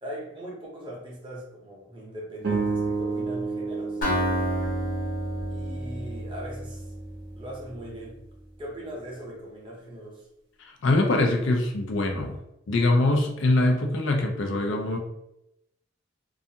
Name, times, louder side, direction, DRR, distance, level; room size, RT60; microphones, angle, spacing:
voice 1, 0.0-4.0 5.5-6.8 7.3-8.2 8.6-10.3, right 1 dB, 25° right, -2 dB, 0.7 m, -40 dB
sound 1, 2.4-6.9, right 4 dB, 60° right, 0.6 m, -31 dB
Acoustic guitar, 4.0-7.9, equal, 50° left, 0.9 m, -30 dB
voice 2, 10.6-12.4 12.7-15.0, left 2 dB, 70° left, 3 dB, 0.4 m, -23 dB
2.4 x 2.3 x 2.7 m, 0.84 s
head